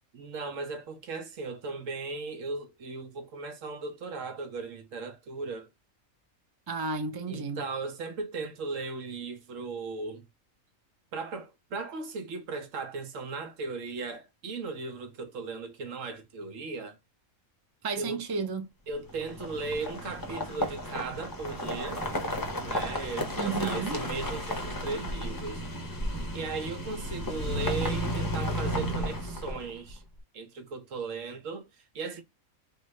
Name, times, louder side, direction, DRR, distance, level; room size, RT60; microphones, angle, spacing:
voice 1, 0.1-5.7 7.3-10.3 11.1-17.0 17.9-18.2 18.9-22.1 22.6-25.7 26.3-30.0 30.3-32.2, right 4 dB, 70° right, 1.2 m, -37 dB
voice 2, 6.7-7.6 17.8-18.6 23.4-24.0, right 4 dB, 35° right, 0.3 m, -32 dB
sound 1, 19.1-29.9, equal, 20° left, 0.6 m, -33 dB
3.3 x 2.4 x 3.1 m
omnidirectional pair, 1.4 m